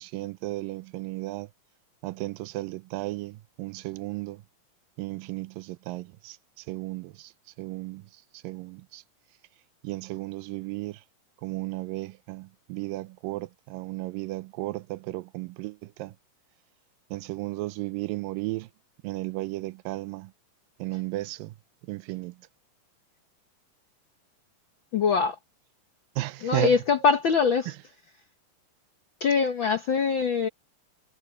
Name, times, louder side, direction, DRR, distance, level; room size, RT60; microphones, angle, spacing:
voice 1, 0.0-1.5 2.0-4.4 5.0-6.4 6.7-7.3 7.6-8.1 8.4-9.0 9.8-11.0 11.4-16.1 17.1-18.7 19.0-20.3 20.8-21.5 21.9-22.4 26.2-26.7, right 19 dB, 90° right, 2.4 m, -34 dB
voice 2, 24.9-25.4 26.4-27.8 29.2-30.5, left 5 dB, 80° left, 1.1 m, -23 dB
omnidirectional pair, 3.9 m